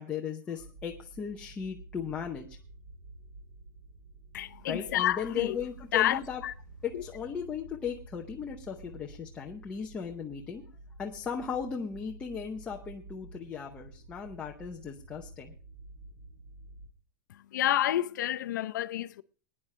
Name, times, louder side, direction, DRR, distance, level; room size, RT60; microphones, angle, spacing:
voice 1, 0.0-2.6 4.7-6.4 6.8-10.6 11.0-15.5, left 7 dB, 10° left, 0.8 m, -37 dB
sound 1, 0.6-16.9, right 2 dB, 30° right, 2.4 m, -50 dB
voice 2, 4.3-5.6 5.9-6.5 6.9-7.0 17.3-19.2, left 13 dB, 75° left, 0.7 m, -29 dB
20.5 x 9.8 x 3.2 m
supercardioid pair, 180°, 10 cm